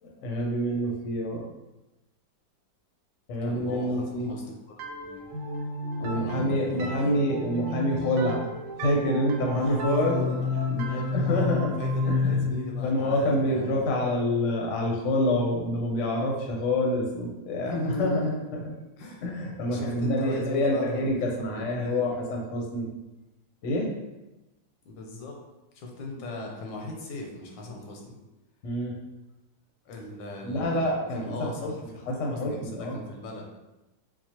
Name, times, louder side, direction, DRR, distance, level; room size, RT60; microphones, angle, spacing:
voice 1, 0.0-1.4 3.3-4.3 6.0-8.5 8.8-10.4 10.7-10.9 11.1-11.7 12.1-12.4 12.8-17.7 18.0-18.6 19.2-22.9 23.6-23.9 28.6-28.9 30.4-31.7 32.1-33.0, left 1 dB, 60° left, 0 dB, 0.8 m, -27 dB
voice 2, 3.4-4.7 5.0-5.3 6.0-7.1 9.5-13.8 17.6-18.4 19.0-19.2 19.7-21.0 21.4-22.1 24.8-25.4 25.7-28.2 29.9-33.5, left 2 dB, 90° left, 0 dB, 1.4 m, -38 dB
sound 1, 4.8-14.3, left 3 dB, 80° right, 1.3 m, -31 dB
4.4 x 2.1 x 2.8 m, 1.0 s
omnidirectional pair, 2.0 m